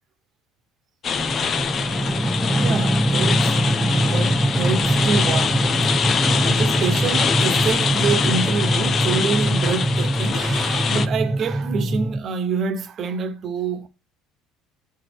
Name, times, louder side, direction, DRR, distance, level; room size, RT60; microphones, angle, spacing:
sound 1, 1.0-11.1, left 6 dB, 35° left, 0.7 m, -24 dB
sound 2, 1.1-12.2, right 1 dB, 5° right, 0.4 m, -23 dB
voice 1, 2.5-5.7 6.4-13.9, right 6 dB, 40° right, 1.1 m, -27 dB
12.5 x 4.4 x 4.6 m
cardioid pair, 130°, 0 cm